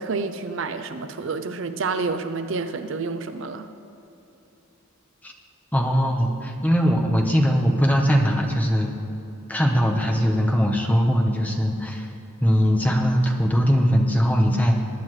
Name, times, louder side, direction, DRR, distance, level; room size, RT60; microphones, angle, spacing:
voice 1, 0.0-3.7, right 4 dB, 60° right, 9 dB, 0.5 m, -29 dB
voice 2, 5.7-9.0 9.5-12.1 12.4-14.8, equal, 5° left, 1 dB, 1.0 m, -20 dB
21.0 x 9.6 x 3.2 m, 2.9 s
head